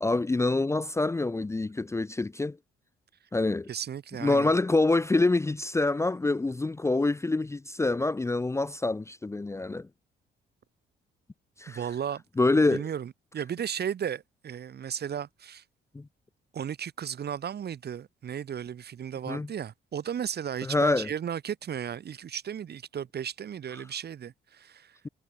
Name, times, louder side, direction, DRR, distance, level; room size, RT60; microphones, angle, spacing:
voice 1, 0.0-2.6 3.3-3.7 4.2-9.9 11.6-11.8 12.4-12.9 15.9-16.1 19.3-19.5 20.6-21.1, left 2 dB, 15° left, 0.6 m, -26 dB
voice 2, 3.7-4.5 11.7-12.2 12.5-15.6 16.5-25.0, right 8 dB, 55° right, 2.1 m, -35 dB
cardioid pair, 90°, 20 cm